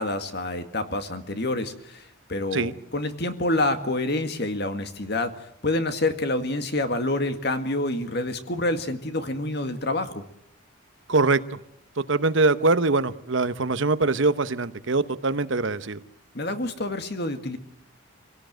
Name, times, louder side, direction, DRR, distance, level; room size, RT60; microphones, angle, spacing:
voice 1, 0.0-5.3 5.6-10.2 16.3-17.6, left 2 dB, 50° left, 8 dB, 1.9 m, -27 dB
voice 2, 11.1-11.6 12.0-16.0, right 3 dB, 65° right, 13 dB, 1.0 m, -23 dB
25.0 x 17.0 x 9.1 m, 0.80 s
head